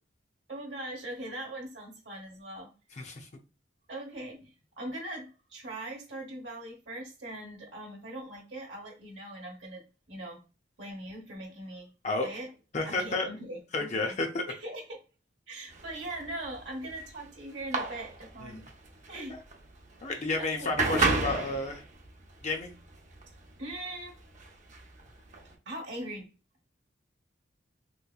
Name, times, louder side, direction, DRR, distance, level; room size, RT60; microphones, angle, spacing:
voice 1, 0.5-2.7 3.9-9.8 10.1-10.4 10.8-11.9 12.2-12.5 12.8-14.2 14.5-15.0 15.5-18.6 19.1-19.4 20.1-20.7 23.6-24.2 24.9-25.1 25.6-26.3, right 1 dB, 70° right, -1 dB, 1.0 m, -41 dB
voice 2, 3.0-3.3 12.0-12.3 12.7-13.3 13.7-14.4 18.4-18.6 19.3-19.4 20.0-21.8 22.4-22.8, left 3 dB, 40° left, 3 dB, 0.6 m, -31 dB
sound 1, 15.7-25.5, right 3 dB, 40° right, 0.7 m, -33 dB
3.3 x 3.1 x 2.3 m, 0.31 s
head